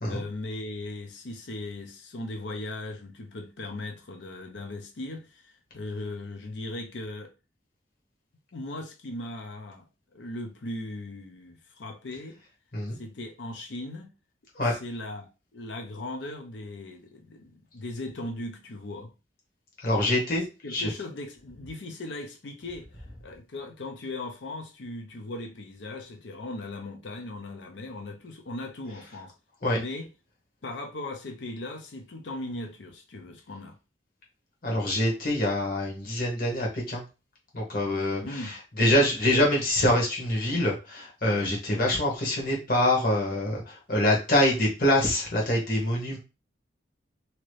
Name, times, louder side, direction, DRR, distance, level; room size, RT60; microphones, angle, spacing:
voice 1, 0.1-7.3 8.5-9.9 10.1-12.4 12.9-14.1 14.7-19.1 20.6-22.9 23.2-29.3 29.7-30.1 30.6-33.8 38.2-38.5, left 2 dB, 70° left, 0.6 m, -38 dB
voice 2, 19.8-20.4 20.7-20.9 29.6-29.8 34.6-37.0 37.5-46.2, left 1 dB, 50° left, 1.2 m, -25 dB
2.9 x 2.5 x 3.2 m
head